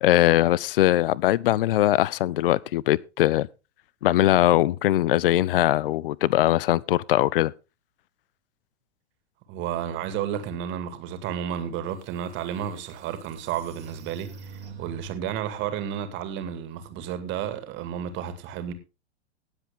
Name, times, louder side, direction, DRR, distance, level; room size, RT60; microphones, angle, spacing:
voice 1, 0.0-3.5 4.0-7.5, left 14 dB, 50° left, 0.6 m, -21 dB
voice 2, 9.5-18.7, right 9 dB, 35° right, 2.2 m, -32 dB
sound 1, 11.6-11.7 12.3-15.4, right 5 dB, 70° right, 2.2 m, -45 dB
18.0 x 7.8 x 3.7 m
figure-of-eight pair, 100°, 35 cm